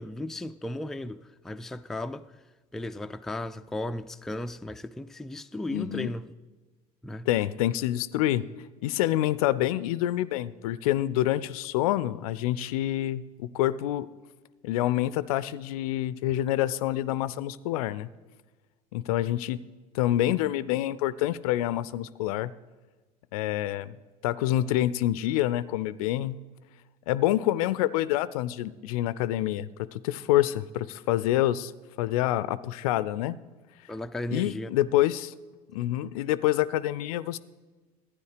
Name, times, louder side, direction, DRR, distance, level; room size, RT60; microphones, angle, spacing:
voice 1, 0.0-2.3 2.7-6.3 7.0-7.3 33.9-34.8, left 1 dB, ahead, 0.3 m, -35 dB
voice 2, 5.7-6.1 7.3-8.4 8.8-14.1 14.6-18.1 18.9-19.6 19.9-22.5 23.3-24.0 24.2-26.4 27.1-31.7 32.0-33.4 34.3-35.3 35.7-37.4, left 14 dB, 65° left, 0.4 m, -27 dB
12.0 x 9.8 x 4.9 m
figure-of-eight pair, 65°, 20 cm